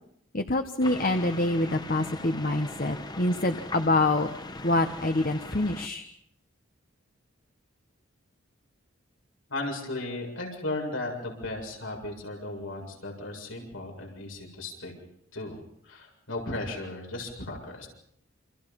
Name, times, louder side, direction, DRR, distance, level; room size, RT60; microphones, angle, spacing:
voice 1, 0.3-4.3 4.6-6.0, left 2 dB, 45° left, 7 dB, 1.3 m, -26 dB
sound 1, 0.8-5.9, left 2 dB, 20° left, 1.3 m, -40 dB
voice 2, 9.5-14.9 15.3-15.6 15.8-17.9, left 2 dB, 80° left, 1 dB, 7.3 m, -35 dB
29.0 x 26.5 x 5.4 m, 0.72 s
head